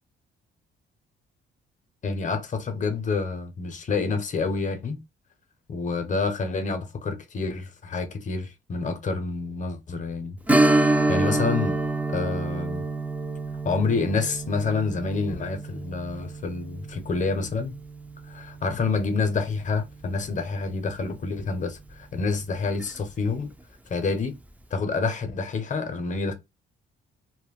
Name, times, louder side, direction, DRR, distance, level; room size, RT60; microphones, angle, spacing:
voice 1, 2.0-5.0 5.7-10.4 10.8-11.8 12.1-12.8 13.6-17.7 18.3-23.5 23.9-24.4 24.7-26.3, left 4 dB, 40° left, 0.6 m, -28 dB
Strum, 10.5-19.7 20.0-20.1 22.6-22.8 23.3-23.4, right 2 dB, 5° right, 0.3 m, -27 dB
2.2 x 2.1 x 3.4 m
cardioid pair, 90°, 20 cm